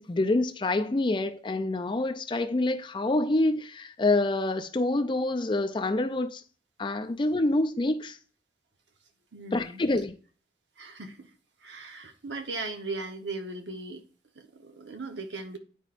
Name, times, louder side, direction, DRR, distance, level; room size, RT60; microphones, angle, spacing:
voice 1, 0.0-6.4 6.8-8.2 9.5-10.1, left 2 dB, 25° left, 0.4 m, -27 dB
voice 2, 9.3-9.8 10.8-11.3 11.6-14.0 14.3-15.6, right 3 dB, 85° right, 1.0 m, -38 dB
9.8 x 4.4 x 2.5 m
head